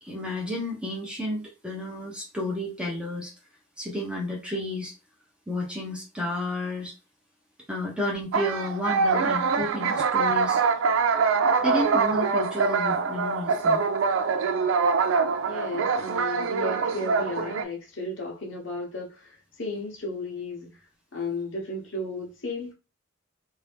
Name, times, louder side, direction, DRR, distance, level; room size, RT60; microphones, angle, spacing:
voice 1, 0.0-3.3 3.8-4.9 5.5-6.9 7.7-10.6 11.6-13.8, left 1 dB, 5° right, 0.8 m, -31 dB
sound 1, 8.3-17.6, right 5 dB, 70° right, 0.4 m, -24 dB
voice 2, 15.5-20.8 21.1-22.7, left 2 dB, 65° left, 1.0 m, -34 dB
2.7 x 2.6 x 3.4 m
head